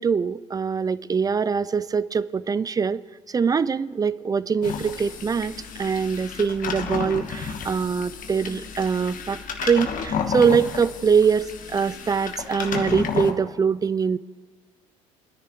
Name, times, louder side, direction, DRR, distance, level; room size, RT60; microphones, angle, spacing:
voice 1, 0.0-3.0 3.3-5.5 5.8-14.2, right 6 dB, 20° right, 19 dB, 0.3 m, -23 dB
sound 1, 4.6-13.3, left 6 dB, 55° left, 1.3 m, -32 dB
20.5 x 10.0 x 3.1 m, 1.5 s
hypercardioid pair, 60°, 17 cm